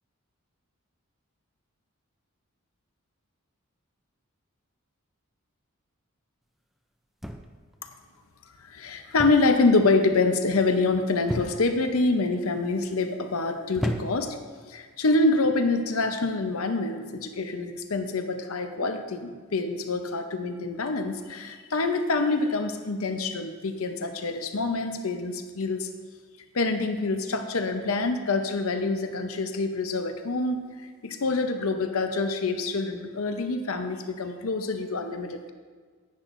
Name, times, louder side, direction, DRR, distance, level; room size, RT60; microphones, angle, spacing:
sound 1, 7.2-7.7 9.2-9.6 9.9-10.3 11.3-11.8 12.5-12.9 13.7-14.4 15.3-15.6, equal, ahead, 0.4 m, -33 dB
voice 1, 8.7-14.4 14.7-25.9 26.5-30.7 31.0-35.5, left 3 dB, 75° left, 7 dB, 0.7 m, -26 dB
10.5 x 10.0 x 2.6 m, 1.5 s
head